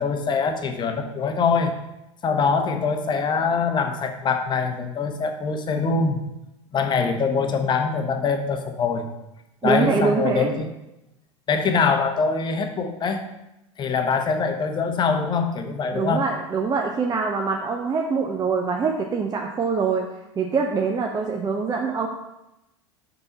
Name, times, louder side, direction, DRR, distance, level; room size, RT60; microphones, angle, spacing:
voice 1, 0.0-1.7 2.2-6.2 6.7-9.1 9.6-10.7 11.5-13.2 13.8-16.2, left 5 dB, 30° left, 6 dB, 0.9 m, -23 dB
voice 2, 9.6-10.6 15.9-20.1 20.4-22.1, right 5 dB, 25° right, 1 dB, 0.7 m, -24 dB
5.9 x 5.5 x 4.0 m, 0.90 s
hypercardioid pair, 85°, 16 cm